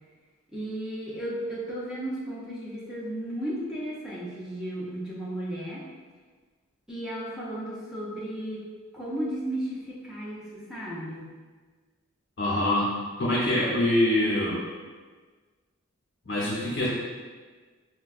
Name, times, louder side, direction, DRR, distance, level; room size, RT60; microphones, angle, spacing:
voice 1, 0.5-5.8 6.9-8.6 8.9-11.3, right 1 dB, 5° right, -7 dB, 0.5 m, -34 dB
voice 2, 12.4-12.9 13.2-14.6 16.2-16.9, left 1 dB, 55° left, -6 dB, 0.7 m, -24 dB
4.5 x 2.2 x 2.4 m, 1.4 s
head